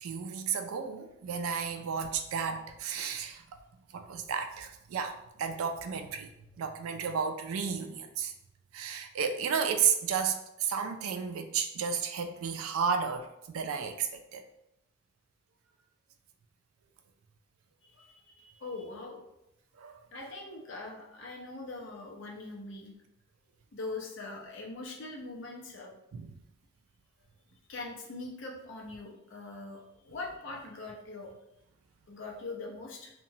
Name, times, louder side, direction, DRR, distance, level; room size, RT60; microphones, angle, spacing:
voice 1, 0.0-3.6 3.9-6.3 6.6-8.3 8.7-14.4 19.8-20.0 26.1-26.4, right 6 dB, 85° right, 7 dB, 0.3 m, -33 dB
voice 2, 17.9-19.2 20.1-22.9 23.7-25.9 27.7-29.8 30.1-31.3 32.1-33.1, left 3 dB, 60° left, 0 dB, 0.5 m, -42 dB
2.8 x 2.2 x 2.7 m, 0.84 s
head